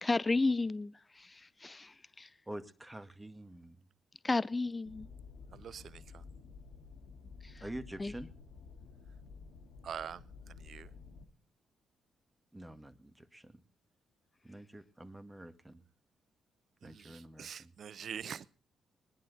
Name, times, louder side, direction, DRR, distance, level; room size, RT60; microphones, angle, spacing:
voice 1, 0.0-2.3 4.2-5.1 7.4-7.6 8.0-8.1, left 3 dB, 30° left, 0.5 m, -33 dB
voice 2, 2.5-3.8 7.6-8.3 12.5-13.6 14.4-15.8 16.8-17.7, right 1 dB, 15° right, 1.8 m, -47 dB
sound 1, 4.8-11.2, left 5 dB, 75° left, 2.3 m, -52 dB
voice 3, 5.5-6.2 9.8-10.9 16.8-18.5, right 8 dB, 60° right, 0.6 m, -45 dB
20.0 x 10.5 x 4.0 m
hypercardioid pair, 45°, 0 cm